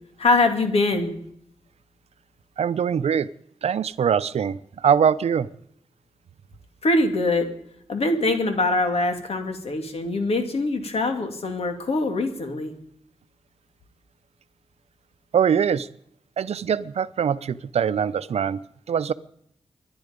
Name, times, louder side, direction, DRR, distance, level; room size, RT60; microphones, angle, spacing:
voice 1, 0.2-1.1 6.8-7.5 7.9-12.7, left 2 dB, 70° left, 6 dB, 2.6 m, -23 dB
voice 2, 2.6-3.3 3.6-5.5 15.3-15.9 16.4-18.6 18.9-19.1, right 7 dB, 80° right, 15 dB, 0.6 m, -22 dB
24.5 x 10.5 x 5.2 m, 0.71 s
cardioid pair, 65°, 11 cm